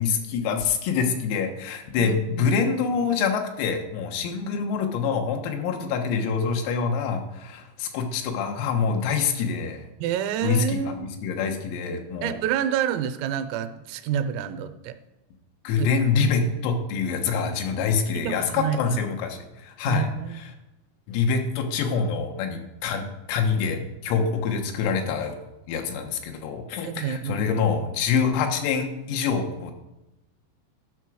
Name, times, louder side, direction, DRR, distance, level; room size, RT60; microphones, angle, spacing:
voice 1, 0.0-9.8 10.4-12.4 15.7-20.1 20.3-20.5 21.1-23.0 23.3-25.4 25.7-29.7, left 5 dB, 90° left, 4 dB, 3.9 m, -26 dB
voice 2, 2.0-2.5 10.0-11.1 12.2-15.0 15.8-15.9 18.1-19.0 19.9-20.4 26.8-27.5, right 9 dB, 85° right, 10 dB, 3.4 m, -28 dB
12.0 x 6.0 x 6.2 m, 0.99 s
omnidirectional pair, 5.9 m